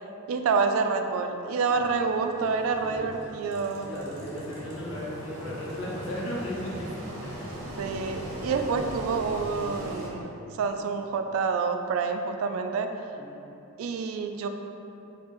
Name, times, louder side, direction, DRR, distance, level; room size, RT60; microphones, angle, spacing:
voice 1, 0.3-3.9 7.8-12.9 13.8-14.5, right 4 dB, 85° right, 10 dB, 0.3 m, -28 dB
Engine, 1.7-10.1, equal, 65° right, 0.7 m, -39 dB
voice 2, 3.8-6.8 13.1-13.4, left 1 dB, 85° left, -5 dB, 0.8 m, -36 dB
4.4 x 2.5 x 3.0 m, 2.8 s
head